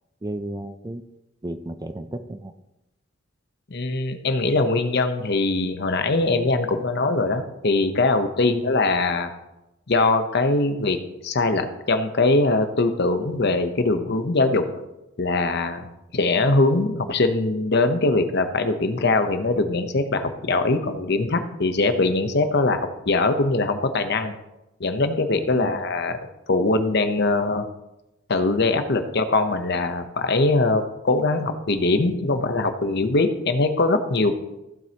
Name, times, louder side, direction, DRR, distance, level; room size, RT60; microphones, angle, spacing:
voice 1, 0.2-1.0 1.4-2.5 25.5-25.8, right 1 dB, 20° right, 10 dB, 0.4 m, -33 dB
voice 2, 3.7-9.3 9.9-11.0 11.2-14.6 15.2-15.9 16.1-24.3 24.8-26.2 26.5-27.6 28.3-34.3, left 2 dB, 55° left, 8 dB, 0.9 m, -22 dB
15.0 x 7.6 x 2.9 m, 0.93 s
head